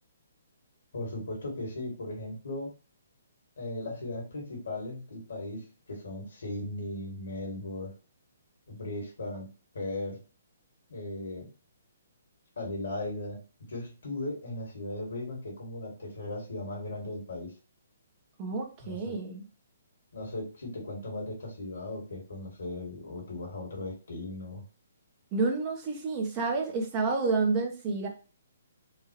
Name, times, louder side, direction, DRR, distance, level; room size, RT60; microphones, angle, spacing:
voice 1, 0.9-2.7 3.6-7.9 8.7-9.5 9.7-10.2 10.9-11.5 12.6-17.5 18.8-19.2 20.1-24.6, left 2 dB, 75° left, 0 dB, 2.3 m, -37 dB
voice 2, 18.4-19.4 25.3-28.1, right 4 dB, 30° right, 1 dB, 1.3 m, -29 dB
4.5 x 2.8 x 3.0 m, 0.34 s
hypercardioid pair, 135°, 0 cm